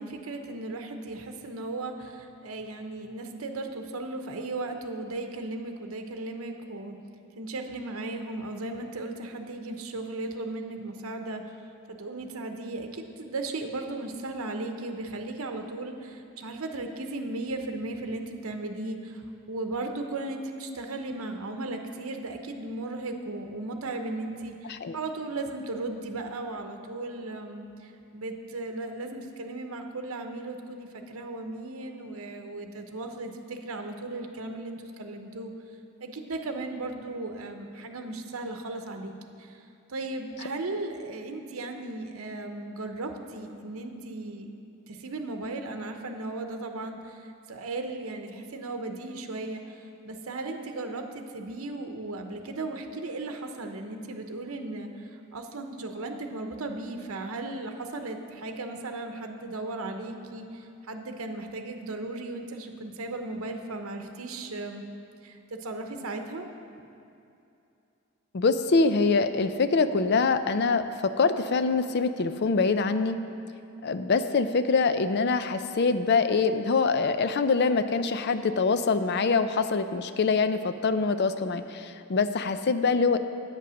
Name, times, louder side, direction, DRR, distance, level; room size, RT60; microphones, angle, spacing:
voice 1, 0.0-7.0 7.4-11.4 12.0-19.2 19.5-24.5 24.9-27.7 28.1-35.5 36.0-39.1 39.9-44.5 44.9-47.2 47.5-49.6 50.0-54.9 55.3-64.8 65.2-66.5, right 2 dB, 80° right, 5 dB, 0.8 m, -36 dB
voice 2, 68.3-73.2 73.8-83.2, left 4 dB, 50° left, 10 dB, 0.4 m, -24 dB
8.5 x 8.3 x 6.2 m, 2.7 s
head